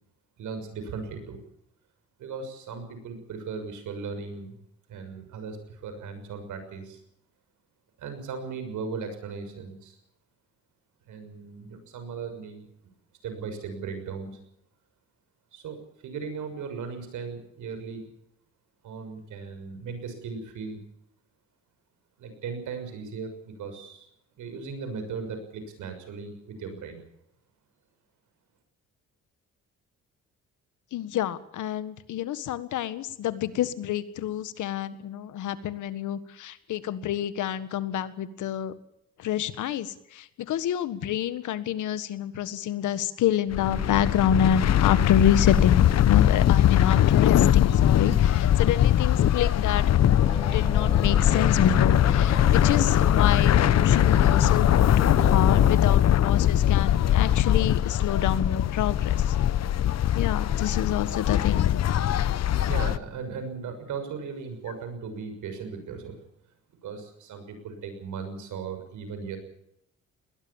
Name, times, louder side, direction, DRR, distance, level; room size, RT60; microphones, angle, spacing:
voice 1, 0.4-1.4 2.2-4.5 4.9-7.0 8.0-10.0 11.1-12.6 13.2-14.3 15.5-18.1 18.8-20.8 22.2-24.1 24.4-27.0 62.7-66.2 66.8-69.4, right 5 dB, 80° right, 8 dB, 6.6 m, -37 dB
voice 2, 30.9-38.7 39.2-54.7 55.0-59.3 60.1-61.7, left 10 dB, 80° left, 14 dB, 1.7 m, -28 dB
sound 1, 43.5-63.0, left 11 dB, 60° left, 1.0 m, -21 dB
sound 2, 50.2-55.7, left 1 dB, 15° left, 3.9 m, -35 dB
21.0 x 19.5 x 7.3 m, 0.76 s
cardioid pair, 90°, 30 cm